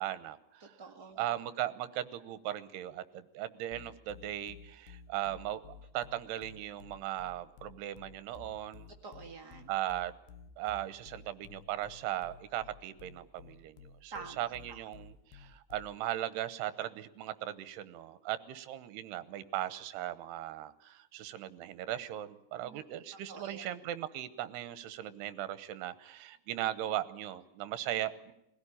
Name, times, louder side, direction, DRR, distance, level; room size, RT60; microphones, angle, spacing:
voice 1, 0.0-0.8 1.2-8.9 9.7-10.1 10.6-28.3, right 13 dB, 80° right, 14 dB, 3.0 m, -38 dB
voice 2, 0.6-1.3 9.0-9.7 14.1-14.8 22.6-22.8 23.3-23.7, right 4 dB, 40° right, 0 dB, 1.6 m, -48 dB
sound 1, 3.7-16.1, left 6 dB, 70° left, 2.6 m, -54 dB
23.0 x 16.5 x 10.0 m, 0.82 s
omnidirectional pair, 4.8 m